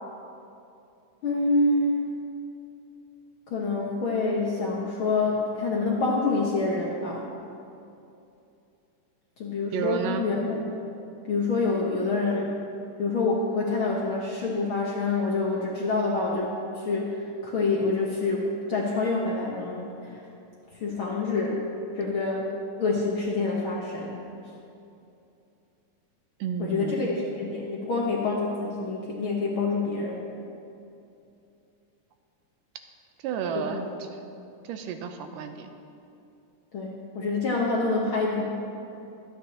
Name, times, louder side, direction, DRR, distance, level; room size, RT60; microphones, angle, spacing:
voice 1, 1.2-2.0 3.5-7.3 9.4-10.6 11.2-12.5 13.0-20.2 20.7-21.6 22.0-22.5 22.8-24.2 26.6-30.3 33.5-33.8 36.7-38.5, left 3 dB, 65° left, -3 dB, 1.3 m, -27 dB
voice 2, 9.7-10.3 26.4-27.1 33.2-33.9 34.7-35.7, right 7 dB, 85° right, 6 dB, 2.3 m, -31 dB
24.0 x 9.2 x 2.9 m, 2.7 s
omnidirectional pair, 3.8 m